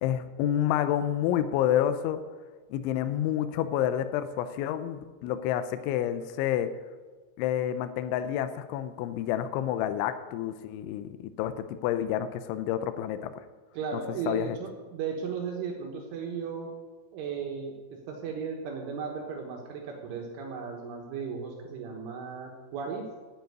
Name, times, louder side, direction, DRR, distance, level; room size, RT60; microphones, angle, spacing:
voice 1, 0.0-2.2 2.7-6.7 7.4-13.3 14.3-14.6, left 11 dB, 85° left, 10 dB, 2.9 m, -29 dB
voice 2, 13.8-16.7 17.1-23.1, right 6 dB, 75° right, 0 dB, 3.6 m, -36 dB
9.4 x 8.9 x 9.4 m, 1.3 s
omnidirectional pair, 5.9 m